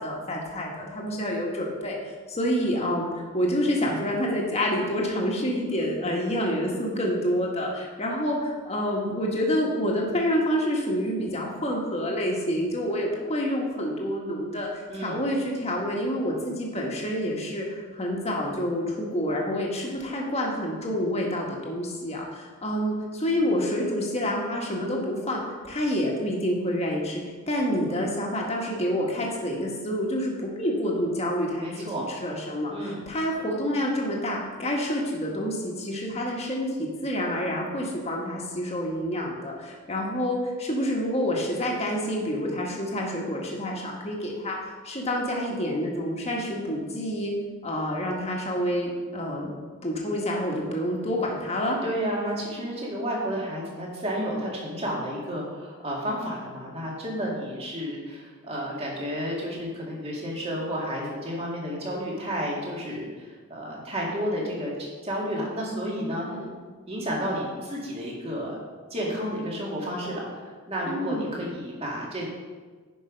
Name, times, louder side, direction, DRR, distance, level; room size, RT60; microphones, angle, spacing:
voice 1, 0.0-27.2 27.5-47.3 47.6-49.5 49.8-51.8 66.3-66.6 70.9-71.4, equal, 30° left, -1 dB, 1.6 m, -28 dB
voice 2, 14.9-15.2 31.6-32.1 32.7-33.0 51.8-66.3 66.9-68.6 68.9-72.3, equal, 25° right, -3 dB, 2.0 m, -31 dB
10.0 x 5.4 x 5.3 m, 1.4 s
head